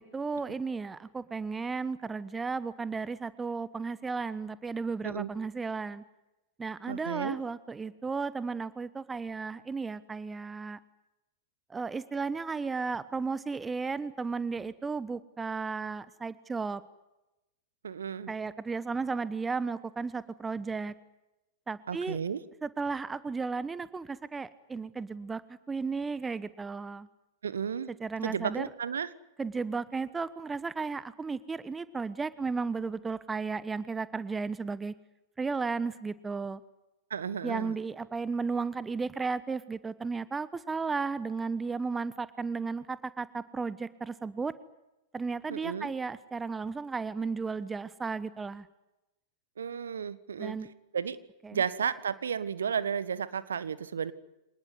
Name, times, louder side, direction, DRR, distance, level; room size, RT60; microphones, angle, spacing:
voice 1, 0.0-6.0 6.6-10.8 11.7-16.8 18.3-20.9 21.7-22.2 22.6-25.4 25.7-27.1 28.0-28.6 29.4-34.9 35.4-36.6 37.4-44.5 45.1-48.7 50.4-50.7 51.4-51.6, right 4 dB, 15° right, 17 dB, 1.2 m, -34 dB
voice 2, 6.9-7.4 17.8-18.3 21.9-22.4 27.4-27.9 28.2-29.1 37.1-37.8 45.5-45.9 49.6-50.6 50.9-51.2 51.5-54.1, right 7 dB, 70° right, 16 dB, 1.5 m, -33 dB
26.0 x 19.5 x 9.6 m, 0.95 s
figure-of-eight pair, 95°, 0 cm